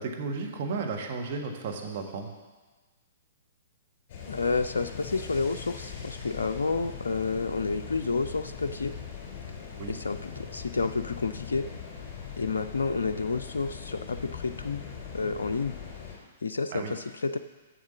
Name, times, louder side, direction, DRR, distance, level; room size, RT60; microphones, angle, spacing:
voice 1, 0.0-2.3 9.8-9.9 16.7-16.9, right 4 dB, 45° right, 1 dB, 1.5 m, -33 dB
sound 1, 4.1-16.2, left 6 dB, 40° left, 3.6 m, -41 dB
voice 2, 4.3-8.9 9.9-11.7 12.4-14.8 15.1-15.7 16.4-17.4, left 4 dB, 70° left, 8 dB, 0.3 m, -30 dB
7.3 x 7.1 x 7.1 m, 1.3 s
figure-of-eight pair, 115°, 0 cm